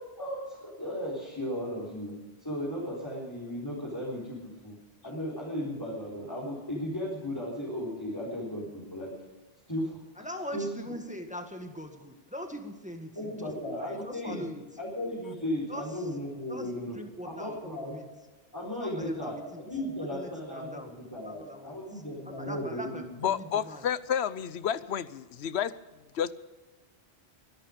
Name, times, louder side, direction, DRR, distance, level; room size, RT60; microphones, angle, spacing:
voice 1, 0.0-2.1 2.4-4.8 5.0-9.1 9.7-10.0 10.5-10.7 13.1-14.4 14.8-17.0 17.2-18.0 18.5-23.0, equal, 20° left, -5 dB, 4.2 m, -35 dB
voice 2, 10.2-14.7 15.7-16.1 16.5-18.1 18.8-19.6 20.0-20.9 21.2-21.8 22.3-23.9, equal, 5° right, 4 dB, 1.7 m, -42 dB
voice 3, 23.2-25.8 26.1-26.3, left 9 dB, 85° left, 16 dB, 1.0 m, -30 dB
24.0 x 11.5 x 5.2 m, 1.2 s
omnidirectional pair, 1.1 m